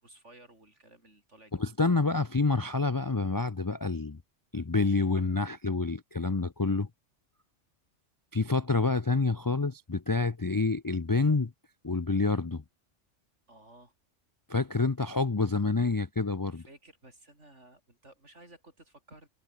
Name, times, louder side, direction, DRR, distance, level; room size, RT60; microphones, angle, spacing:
voice 1, 0.0-2.2 13.5-13.9 16.5-19.3, right 2 dB, 65° right, 6.7 m, -56 dB
voice 2, 1.6-4.2 4.5-6.9 8.3-11.5 11.8-12.6 14.5-16.6, left 3 dB, 25° left, 0.4 m, -28 dB
omnidirectional pair, 1.3 m